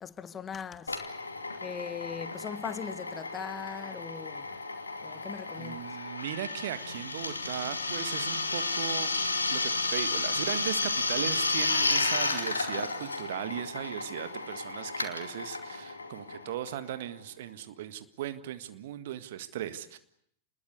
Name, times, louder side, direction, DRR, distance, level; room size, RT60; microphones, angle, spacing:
voice 1, 0.0-1.0 1.6-4.5 5.0-5.8, left 7 dB, 20° left, 1.4 m, -39 dB
Drill, 0.9-17.2, left 3 dB, 80° left, 2.5 m, -32 dB
voice 2, 5.6-9.1 9.5-20.0, right 11 dB, 55° right, 1.7 m, -37 dB
28.0 x 21.0 x 8.2 m
figure-of-eight pair, 90°, 0 cm